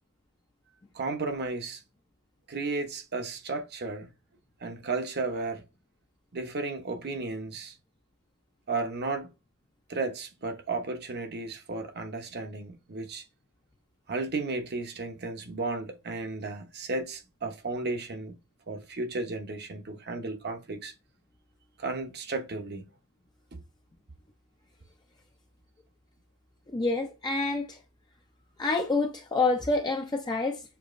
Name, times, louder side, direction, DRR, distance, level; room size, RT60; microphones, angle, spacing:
voice 1, 0.9-1.8 2.5-4.1 4.6-5.6 6.3-7.7 8.7-9.3 9.9-13.2 14.1-18.3 18.7-20.9 21.8-22.8 23.5-23.6, right 3 dB, 50° right, 0.9 m, -34 dB
voice 2, 26.7-27.8 28.6-30.6, left 3 dB, 20° left, 0.5 m, -27 dB
6.9 x 2.9 x 2.5 m
head